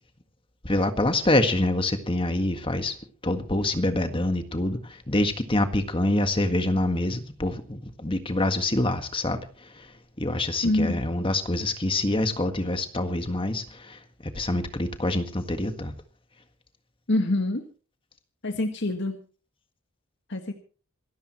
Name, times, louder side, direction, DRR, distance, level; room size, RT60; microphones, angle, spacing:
voice 1, 0.6-2.9 3.2-9.9 10.2-15.9, left 1 dB, 25° left, 1.7 m, -26 dB
voice 2, 10.6-11.0 17.1-17.6 18.4-19.2 20.3-20.5, left 1 dB, 60° left, 1.8 m, -25 dB
27.0 x 14.0 x 3.1 m
head